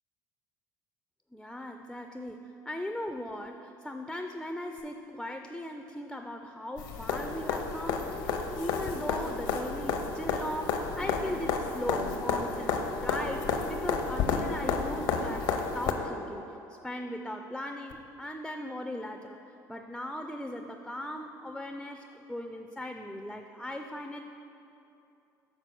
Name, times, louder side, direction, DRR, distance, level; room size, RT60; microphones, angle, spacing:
voice 1, 1.3-19.4 19.7-24.2, left 1 dB, ahead, 5 dB, 0.3 m, -38 dB
sound 1, 6.8-15.9 17.9-18.0, left 5 dB, 75° left, 0.6 m, -31 dB
6.7 x 4.2 x 6.0 m, 2.8 s
supercardioid pair, 85°, 9 cm